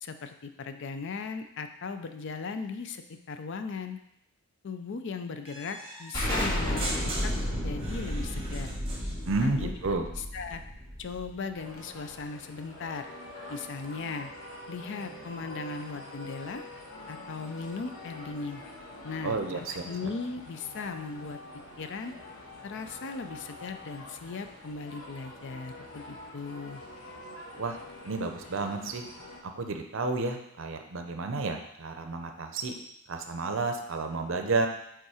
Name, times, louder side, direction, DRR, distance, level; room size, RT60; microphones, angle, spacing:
voice 1, 0.0-4.0 4.6-7.3 7.6-8.7 9.4-10.6 11.0-13.1 13.5-14.3 14.7-16.6 17.1-18.6 19.0-21.4 21.8-22.1 22.6-26.8, left 4 dB, 55° left, 8 dB, 0.4 m, -38 dB
sound 1, 5.5-9.5, right 1 dB, 25° right, 1.3 m, -40 dB
Explosion, 6.1-11.6, equal, 15° left, 2.2 m, -32 dB
voice 2, 9.3-10.1 19.2-19.8 27.6-27.8 28.0-29.0 29.6-32.7 33.1-34.7, right 3 dB, 60° right, 5 dB, 0.6 m, -31 dB
sound 2, 11.6-29.4, left 1 dB, 80° left, 1.1 m, -46 dB
5.3 x 3.8 x 4.8 m, 0.79 s
head